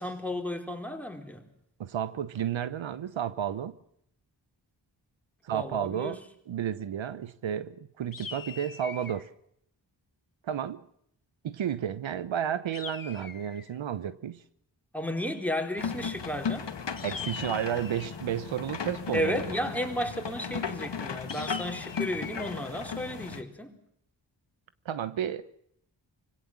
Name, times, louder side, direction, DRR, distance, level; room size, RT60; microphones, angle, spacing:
voice 1, 0.0-1.4 5.5-6.2 14.9-16.7 19.1-23.7, equal, 5° left, 4.2 m, -33 dB
voice 2, 1.8-3.8 5.4-6.2 6.5-9.3 10.4-10.8 11.4-14.4 17.0-19.6 24.8-25.5, right 9 dB, 80° right, 1.0 m, -32 dB
sound 1, 8.1-9.3 12.7-13.8 17.0-18.2 21.3-22.5, left 6 dB, 45° left, 1.4 m, -42 dB
sound 2, 15.8-23.4, left 6 dB, 65° left, 2.1 m, -36 dB
24.5 x 17.0 x 7.5 m
cardioid pair, 45°, 45 cm